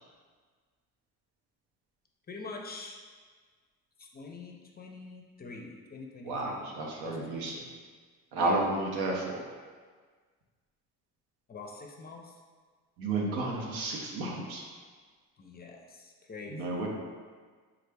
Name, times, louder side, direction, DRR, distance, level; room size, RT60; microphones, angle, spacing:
voice 1, 2.3-3.0 4.0-6.6 7.0-7.5 8.3-8.6 11.5-12.4 15.4-16.8, left 3 dB, 25° left, 1 dB, 0.4 m, -45 dB
voice 2, 6.2-7.7 8.3-9.4 13.0-14.6 16.5-16.9, right 2 dB, 85° right, -1 dB, 0.7 m, -32 dB
3.2 x 2.4 x 3.3 m, 1.5 s
supercardioid pair, 75°, 37 cm